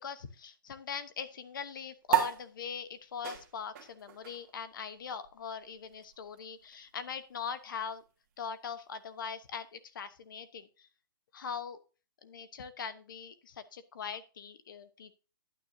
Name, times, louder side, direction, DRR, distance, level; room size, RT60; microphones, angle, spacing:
voice 1, 0.0-8.0 8.4-10.9 11.3-11.8 12.2-15.1, left 6 dB, 60° left, 13 dB, 1.0 m, -41 dB
sound 1, 2.1-8.9, right 11 dB, 40° right, 1.6 m, -37 dB
10.5 x 9.3 x 2.7 m, 0.35 s
hypercardioid pair, 160°, 12 cm